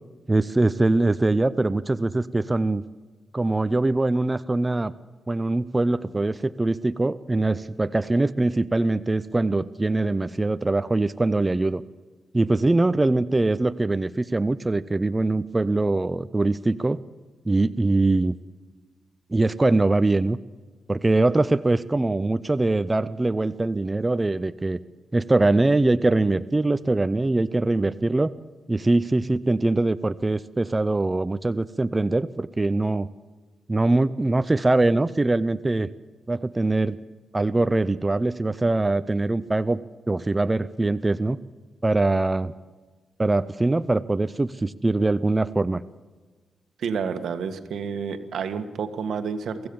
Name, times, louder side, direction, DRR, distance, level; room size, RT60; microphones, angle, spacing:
voice 1, 0.3-2.8 3.3-4.9 5.3-11.8 12.3-17.0 17.5-18.4 19.3-20.4 20.9-24.8 25.1-28.3 28.7-33.1 33.7-35.9 36.3-37.0 37.3-39.8 40.1-41.4 41.8-42.5 43.2-45.8, right 2 dB, 20° right, 13 dB, 0.5 m, -22 dB
voice 2, 46.8-49.7, right 6 dB, 75° right, 9 dB, 1.6 m, -29 dB
23.5 x 15.5 x 7.1 m, 1.4 s
cardioid pair, 115°, 0 cm